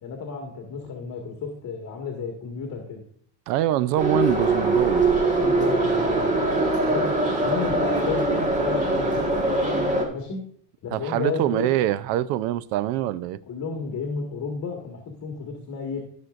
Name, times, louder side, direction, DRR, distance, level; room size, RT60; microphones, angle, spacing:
voice 1, 0.0-3.0 5.3-6.4 6.8-7.1 7.4-9.4 10.1-10.4 10.8-11.7 13.5-16.0, left 5 dB, 35° left, 1.8 m, -32 dB
voice 2, 3.5-5.1 10.9-13.4, right 13 dB, 75° right, 0.7 m, -24 dB
Subway metro underground, 4.0-10.1, right 2 dB, 15° right, 1.8 m, -22 dB
14.5 x 6.3 x 2.5 m
supercardioid pair, 120°, 49 cm